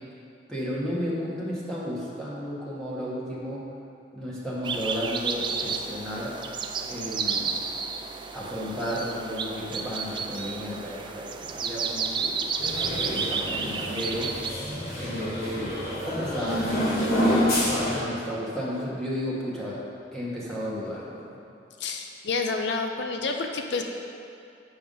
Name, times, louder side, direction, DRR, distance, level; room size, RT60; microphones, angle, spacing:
voice 1, 0.5-3.6 4.1-6.4 6.9-7.6 8.3-12.5 13.0-14.4 15.0-15.8 16.0-19.8 20.1-21.4, equal, 5° left, -8 dB, 1.5 m, -33 dB
sound 1, 4.6-14.5, right 5 dB, 25° right, 0.3 m, -31 dB
sound 2, 12.6-18.0, equal, 55° left, 1.8 m, -28 dB
voice 2, 17.0-17.4 21.8-23.8, left 4 dB, 70° left, 4 dB, 0.6 m, -30 dB
7.8 x 4.8 x 5.4 m, 2.7 s
head